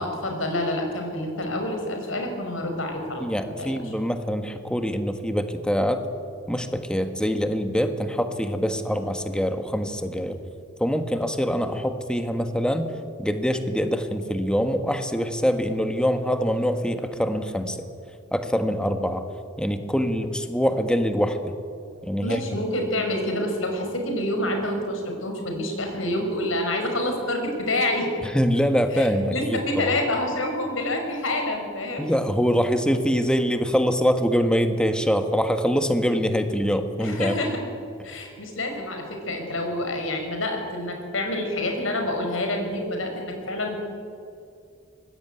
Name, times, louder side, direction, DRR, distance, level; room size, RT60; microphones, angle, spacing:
voice 1, 0.0-3.2 3.6-3.9 22.2-28.1 28.9-32.1 37.0-37.6 38.0-43.8, left 1 dB, 85° left, 3 dB, 5.7 m, -27 dB
voice 2, 3.2-6.0 6.5-10.4 10.8-12.9 13.2-17.8 18.3-19.2 19.6-21.5 22.0-22.4 28.2-29.9 32.0-37.4, equal, 5° left, 7 dB, 1.6 m, -24 dB
24.5 x 20.0 x 9.2 m, 2.4 s
head